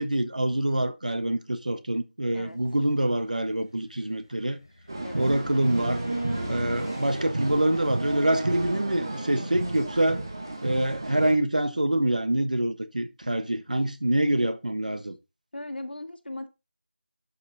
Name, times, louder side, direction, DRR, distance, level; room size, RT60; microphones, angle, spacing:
voice 1, 0.0-4.6 5.1-6.0 6.5-10.2 10.6-15.2, right 1 dB, 45° right, 1.3 m, -26 dB
Car, 2.5-10.7, left 1 dB, 25° left, 0.8 m, -45 dB
sound 1, 4.9-11.3, right 2 dB, 20° right, 1.2 m, -32 dB
voice 2, 15.5-16.5, left 1 dB, 70° left, 1.9 m, -38 dB
11.5 x 5.7 x 4.0 m
figure-of-eight pair, 180°, 6 cm